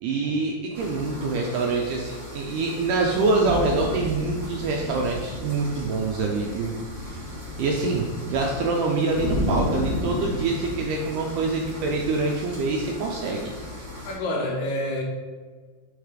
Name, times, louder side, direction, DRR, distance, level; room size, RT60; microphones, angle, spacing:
voice 1, 0.0-6.8 7.6-13.5, right 3 dB, 80° right, 0 dB, 1.9 m, -25 dB
sound 1, 0.7-14.1, left 1 dB, 40° right, 1.0 m, -33 dB
voice 2, 14.1-15.0, left 1 dB, 75° left, 0 dB, 2.6 m, -28 dB
6.6 x 3.9 x 4.9 m, 1.4 s
omnidirectional pair, 4.3 m